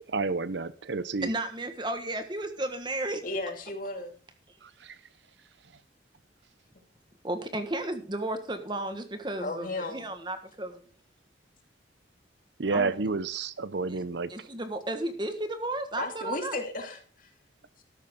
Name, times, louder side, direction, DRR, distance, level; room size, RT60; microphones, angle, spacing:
voice 1, 0.0-1.3 4.6-5.0 12.6-14.3, right 4 dB, 70° right, 0.7 m, -30 dB
voice 2, 1.2-3.2 7.2-10.8 12.7-12.9 13.9-14.0 14.3-16.6, right 1 dB, 25° right, 1.4 m, -33 dB
voice 3, 3.2-4.1 9.4-10.0 16.0-17.3, left 2 dB, 45° left, 2.5 m, -34 dB
13.5 x 11.0 x 3.7 m
head